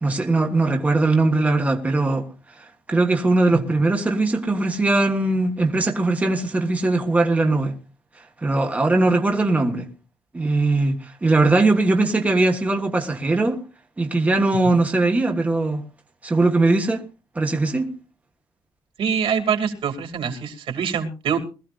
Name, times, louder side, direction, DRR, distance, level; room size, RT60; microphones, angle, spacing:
voice 1, 0.0-2.3 2.6-7.7 8.4-9.9 10.3-13.6 14.0-15.8 16.2-17.0 17.3-17.9, right 2 dB, 15° right, 1.5 m, -20 dB
voice 2, 19.0-21.4, right 7 dB, 85° right, 2.6 m, -24 dB
21.5 x 14.5 x 2.5 m
wide cardioid pair, 180°, 9 cm